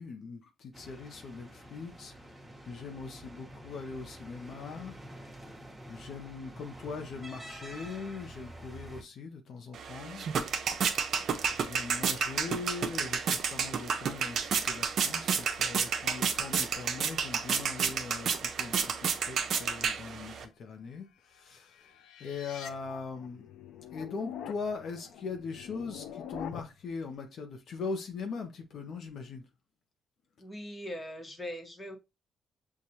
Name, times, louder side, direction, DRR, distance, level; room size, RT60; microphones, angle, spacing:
voice 1, 0.0-2.3 2.7-5.0 5.5-5.6 5.9-10.3 10.6-10.7 11.5-21.9 22.2-23.5 23.9-29.4, left 4 dB, 65° left, 0.8 m, -41 dB
sound 1, 0.7-9.0, right 1 dB, 5° right, 1.3 m, -48 dB
sound 2, 9.7-20.5, right 6 dB, 60° right, 0.6 m, -31 dB
voice 2, 11.2-11.5 30.4-32.0, equal, 15° left, 1.2 m, -41 dB
sound 3, 21.4-26.8, left 9 dB, 85° left, 0.4 m, -45 dB
6.5 x 2.4 x 2.8 m
cardioid pair, 90°, 0 cm